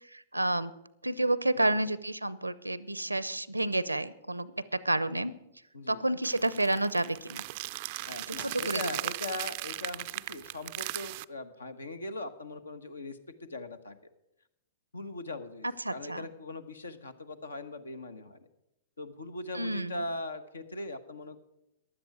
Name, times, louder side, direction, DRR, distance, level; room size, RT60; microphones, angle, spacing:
voice 1, 0.1-0.7 1.0-5.3 5.9-7.4 8.3-8.8 15.8-16.3 19.5-20.0, right 2 dB, 90° right, 19 dB, 0.6 m, -30 dB
voice 2, 5.7-6.0 8.1-14.0 14.9-18.5 19.0-21.4, left 2 dB, 75° left, 12 dB, 1.2 m, -40 dB
sound 1, 6.2-11.2, right 21 dB, 45° right, 0.4 m, -38 dB
15.5 x 11.0 x 4.9 m, 0.88 s
figure-of-eight pair, 105°, 0 cm